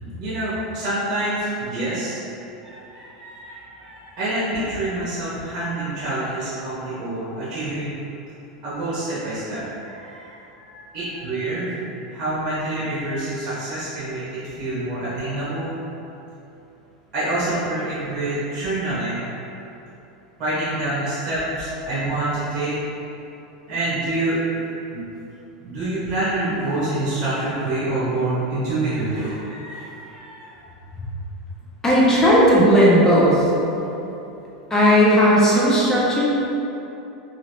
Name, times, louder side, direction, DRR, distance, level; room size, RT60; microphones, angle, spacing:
voice 1, 0.0-2.2 2.6-8.1 8.6-15.7 17.1-19.3 20.4-22.8 23.7-24.4 24.9-25.0 25.6-30.6 35.5-35.6 35.9-36.3, right 2 dB, 40° right, -11 dB, 1.1 m, -27 dB
voice 2, 31.8-33.4 34.7-36.3, equal, 15° left, -7 dB, 0.8 m, -15 dB
3.1 x 3.0 x 2.7 m, 2.9 s
hypercardioid pair, 110°, 4 cm